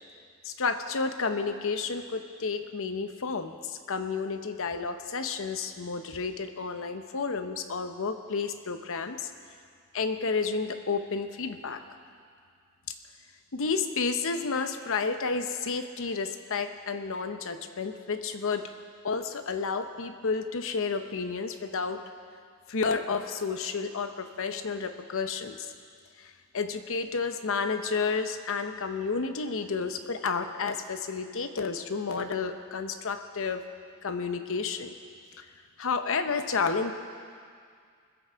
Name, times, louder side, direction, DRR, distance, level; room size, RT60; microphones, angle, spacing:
voice 1, 0.4-9.3 9.9-11.8 13.5-18.7 19.0-22.0 22.7-25.7 26.2-33.6 34.0-34.9 35.4-35.5 35.8-36.9, left 4 dB, 65° left, 8 dB, 0.8 m, -31 dB
20.5 x 8.1 x 5.1 m, 2.1 s
head